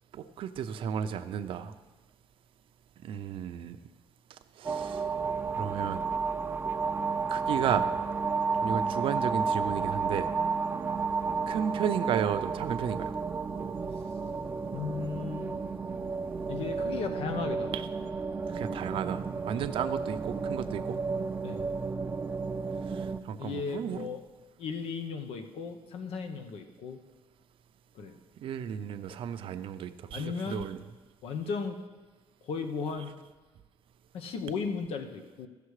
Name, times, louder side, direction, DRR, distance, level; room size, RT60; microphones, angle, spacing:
voice 1, 0.1-1.7 3.0-3.8 4.6-5.0 5.5-6.0 7.3-7.9 8.6-10.3 11.5-13.1 17.7-17.9 18.5-21.0 22.9-24.1 28.4-30.8, right 8 dB, 55° right, 10 dB, 0.6 m, -33 dB
sound 1, 4.6-23.2, right 5 dB, 20° right, 0.4 m, -32 dB
voice 2, 14.7-15.6 16.5-17.8 19.5-19.6 21.4-21.7 23.4-24.2 24.6-27.0 27.9-28.2 30.1-30.7 31.2-31.8 32.4-33.2 34.1-35.5, left 5 dB, 65° left, 7 dB, 1.1 m, -35 dB
15.0 x 6.8 x 4.9 m, 1.2 s
cardioid pair, 140°, 11 cm